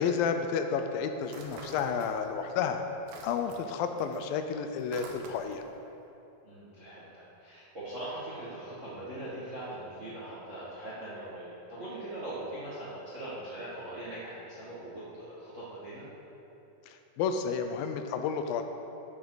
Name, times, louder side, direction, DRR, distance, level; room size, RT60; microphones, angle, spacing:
voice 1, 0.0-2.8 3.2-5.6 17.2-18.6, left 6 dB, 80° left, 7 dB, 2.3 m, -31 dB
sound 1, 1.2-2.5 2.8-5.7, right 3 dB, 70° right, 1.7 m, -47 dB
voice 2, 6.4-16.0, right 1 dB, 40° right, -9 dB, 1.0 m, -41 dB
13.5 x 7.1 x 4.0 m, 3.0 s
omnidirectional pair, 4.2 m